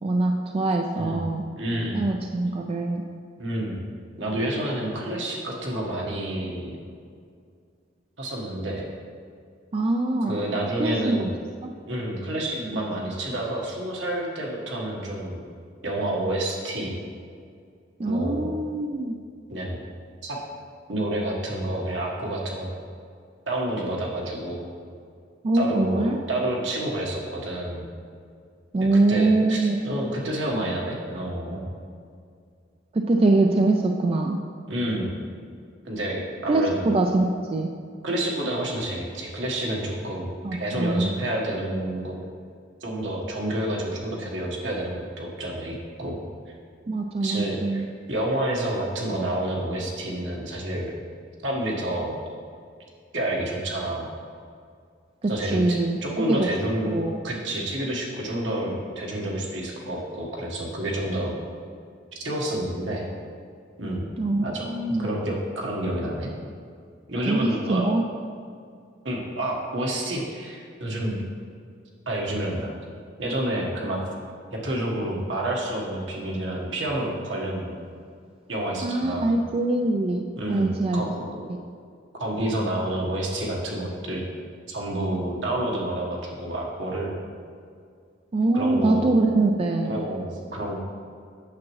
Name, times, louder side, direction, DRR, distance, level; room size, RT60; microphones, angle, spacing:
voice 1, 0.0-1.4 1.9-3.0 9.7-10.4 10.8-11.3 11.6-11.7 18.0-19.2 25.4-26.2 28.7-29.8 32.9-34.4 36.5-37.7 40.4-41.1 46.9-47.9 55.2-56.0 56.3-56.5 56.9-57.2 64.2-65.1 67.3-68.0 78.8-80.2 80.5-81.0 88.3-90.0, right 2 dB, 30° right, 3 dB, 0.3 m, -23 dB
voice 2, 1.6-2.0 3.4-3.8 4.1-6.8 8.2-8.9 10.3-11.3 11.9-15.4 15.8-17.0 18.0-18.5 19.5-19.8 20.2-20.4 20.9-22.7 23.5-24.7 25.5-27.9 29.1-31.7 34.7-35.1 35.8-36.9 38.0-40.3 40.6-42.1 42.8-46.2 47.2-50.9 51.4-52.2 53.1-54.1 55.3-57.0 57.2-61.4 62.1-63.1 63.8-64.1 64.4-66.3 67.1-67.9 69.0-71.2 72.1-72.7 73.2-74.0 74.5-77.8 78.5-79.4 80.4-81.5 82.1-84.2 84.7-87.2 88.5-89.1 89.8-90.7, right 1 dB, 75° right, -2 dB, 1.5 m, -29 dB
8.5 x 7.3 x 3.2 m, 2.3 s
head